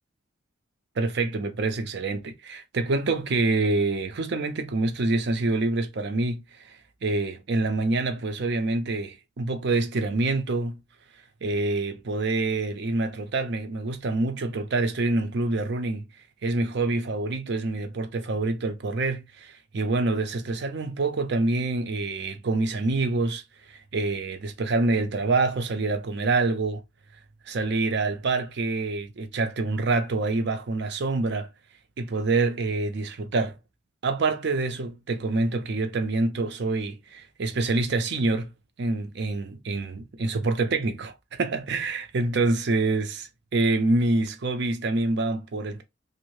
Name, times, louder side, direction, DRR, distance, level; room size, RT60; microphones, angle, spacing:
voice 1, 1.0-10.8 11.4-16.0 16.4-23.4 23.7-26.8 27.5-31.5 32.0-33.5 34.0-38.5 38.8-43.1 43.5-45.8, right 3 dB, 55° right, 0.5 m, -26 dB
2.6 x 2.0 x 3.0 m
head